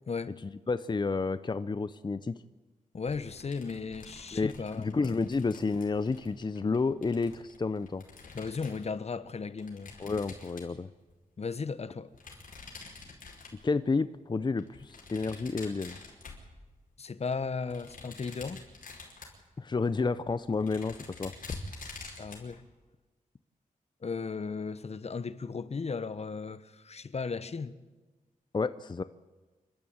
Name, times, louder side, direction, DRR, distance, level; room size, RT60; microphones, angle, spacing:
voice 1, 0.1-0.4 2.9-5.2 8.3-9.9 11.4-12.1 17.0-18.6 22.2-22.6 24.0-27.8, left 5 dB, 50° left, 1.0 m, -36 dB
voice 2, 0.7-2.4 4.3-8.0 10.0-10.9 13.6-16.0 19.6-21.3 28.5-29.0, left 4 dB, 30° left, 0.7 m, -30 dB
sound 1, 3.1-8.9 9.6-11.1 12.1-13.8 14.6-16.9 17.3-19.5 19.9-20.0 20.3-22.6, left 3 dB, 80° left, 5.2 m, -47 dB
27.5 x 13.0 x 8.7 m
wide cardioid pair, 90°, 14 cm